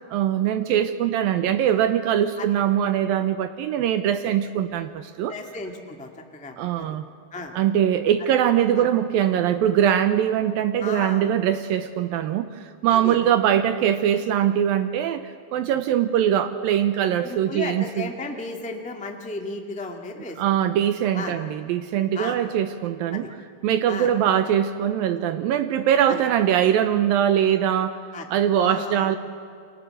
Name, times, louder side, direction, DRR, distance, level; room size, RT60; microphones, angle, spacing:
voice 1, 0.1-5.3 6.6-7.0 7.5-18.1 20.4-23.3 23.6-28.0 28.3-29.2, right 10 dB, 75° right, 10 dB, 2.4 m, -22 dB
voice 2, 5.3-6.9 7.3-7.5 8.8-8.9 10.8-11.3 12.9-13.2 17.2-20.4 21.1-21.3 22.1-22.4 23.1-23.3 23.9-24.1 26.1-26.2 28.1-28.2 28.6-29.1, left 3 dB, 10° left, 3 dB, 0.3 m, -34 dB
29.5 x 24.0 x 7.9 m, 2.4 s
omnidirectional pair, 4.6 m